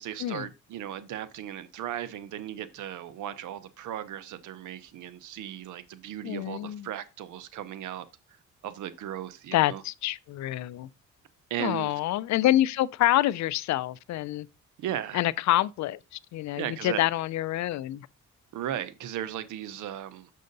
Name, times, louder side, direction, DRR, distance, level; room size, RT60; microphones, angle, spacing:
voice 1, 0.0-8.1 8.6-9.8 11.5-11.9 14.8-15.2 16.6-17.0 18.5-20.3, right 11 dB, 80° right, 0.8 m, -36 dB
voice 2, 6.2-6.9 9.5-10.9 11.6-14.5 15.1-16.0 16.3-18.1, left 14 dB, 65° left, 0.4 m, -26 dB
6.4 x 5.6 x 3.9 m
cardioid pair, 90°, 30 cm